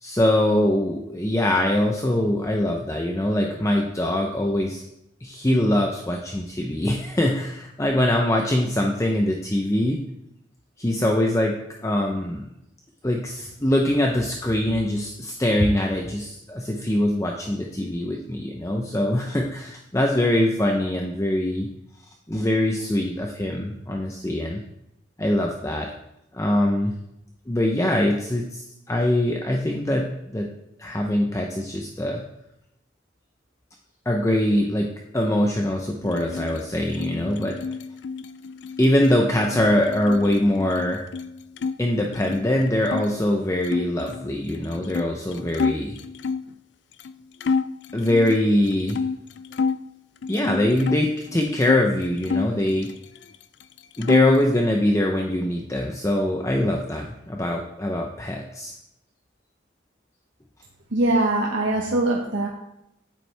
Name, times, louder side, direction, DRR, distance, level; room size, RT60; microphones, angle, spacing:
voice 1, 0.0-4.8 5.2-10.0 10.8-11.6 11.8-12.5 13.0-21.7 22.3-24.6 25.2-25.9 26.3-27.0 27.5-30.5 30.8-32.2 34.1-37.6 38.8-41.1 41.8-46.0 47.9-49.0 50.3-52.9 54.0-58.7, left 1 dB, 15° left, 1 dB, 0.7 m, -23 dB
sound 1, 36.0-41.7 42.0-43.1 43.6-46.5 47.0-47.1 47.4-49.8 50.2-51.8 52.2-53.3 53.6-54.5, left 5 dB, 65° left, 0.4 m, -29 dB
voice 2, 60.9-62.5, right 2 dB, 80° right, -1 dB, 1.2 m, -22 dB
9.4 x 8.9 x 3.4 m, 0.83 s
head